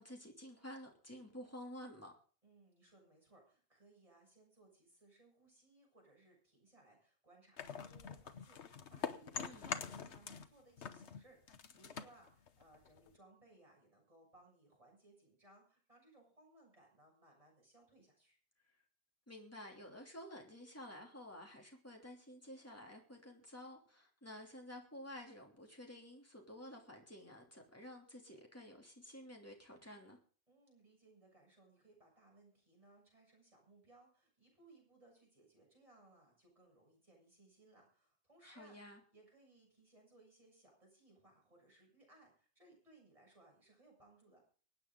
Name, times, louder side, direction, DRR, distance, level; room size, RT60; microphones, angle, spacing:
voice 1, 0.0-2.1 9.3-9.7 19.3-30.2 38.4-39.0, left 1 dB, 15° left, 1 dB, 3.0 m, -52 dB
voice 2, 2.4-18.4 30.5-38.8 39.1-44.4, right 2 dB, 30° right, -2 dB, 7.4 m, -66 dB
sound 1, 7.6-10.5 10.8-13.2, left 6 dB, 80° left, 1.3 m, -45 dB
24.5 x 9.1 x 3.9 m, 0.42 s
omnidirectional pair, 1.1 m